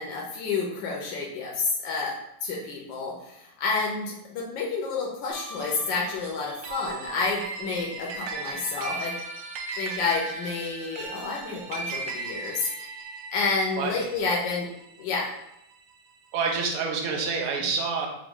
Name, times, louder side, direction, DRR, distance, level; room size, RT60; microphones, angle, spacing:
voice 1, 0.0-9.1 9.8-12.7 13.3-14.7 15.0-15.3, left 4 dB, 80° left, -2 dB, 1.5 m, -29 dB
sound 1, 5.3-15.9, right 3 dB, 85° right, 1.3 m, -38 dB
voice 2, 16.3-18.1, right 5 dB, 60° right, 0 dB, 1.1 m, -27 dB
5.0 x 2.7 x 3.7 m, 0.81 s
omnidirectional pair, 2.0 m